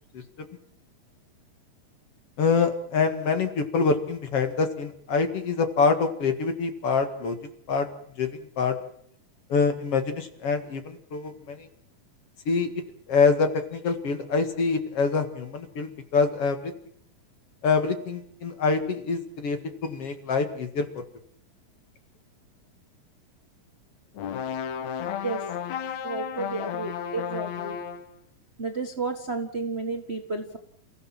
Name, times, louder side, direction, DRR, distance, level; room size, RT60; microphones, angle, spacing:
voice 1, 2.4-7.4 7.7-7.9 8.2-8.3 8.6-8.7 9.5-11.7 12.5-12.7 13.1-16.7 17.6-20.9, left 4 dB, 50° left, 7 dB, 2.5 m, -25 dB
sound 1, 24.2-28.1, left 8 dB, 65° left, 2.1 m, -33 dB
voice 2, 26.0-27.8 28.6-30.6, right 4 dB, 60° right, 5 dB, 0.6 m, -32 dB
28.5 x 16.0 x 7.5 m, 0.66 s
omnidirectional pair, 4.0 m